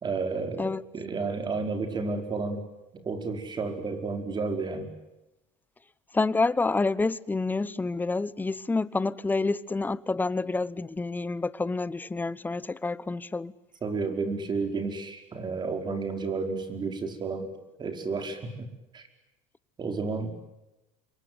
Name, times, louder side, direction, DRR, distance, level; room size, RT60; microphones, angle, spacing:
voice 1, 0.0-0.7 0.9-2.6 2.9-4.9 13.8-17.5 17.8-18.7 18.9-19.0 19.8-20.5, right 4 dB, 25° right, 4.9 m, -31 dB
voice 2, 6.1-13.5, left 3 dB, 10° left, 0.9 m, -28 dB
27.0 x 23.0 x 9.6 m
supercardioid pair, 120°, 16 cm